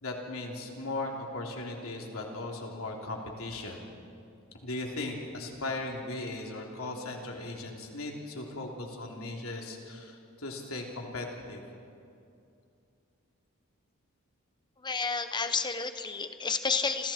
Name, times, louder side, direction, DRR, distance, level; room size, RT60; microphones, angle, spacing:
voice 1, 0.0-3.8 4.6-11.6, left 2 dB, 80° left, 0 dB, 3.3 m, -37 dB
voice 2, 14.8-17.1, left 5 dB, 20° left, 9 dB, 1.1 m, -30 dB
28.5 x 27.5 x 4.5 m, 2.5 s
head